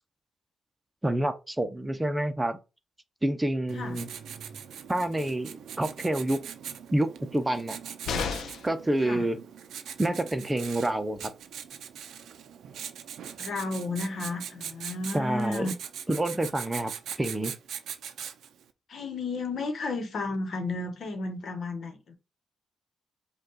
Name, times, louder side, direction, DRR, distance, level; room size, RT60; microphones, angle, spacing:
voice 1, 1.0-2.6 3.2-4.1 4.9-6.4 6.9-7.8 8.6-9.4 10.0-11.3 15.1-15.7 16.1-16.9 17.2-17.5, right 1 dB, 15° right, 0.7 m, -28 dB
Writing, 3.7-18.6, right 8 dB, 80° right, 0.5 m, -41 dB
sound 1, 8.0-8.8 10.7-10.8 11.2-11.3, left 5 dB, 80° left, 0.6 m, -32 dB
voice 2, 13.4-15.7 18.9-22.1, left 3 dB, 65° left, 1.1 m, -33 dB
5.1 x 2.4 x 4.0 m
cardioid pair, 70°, 0 cm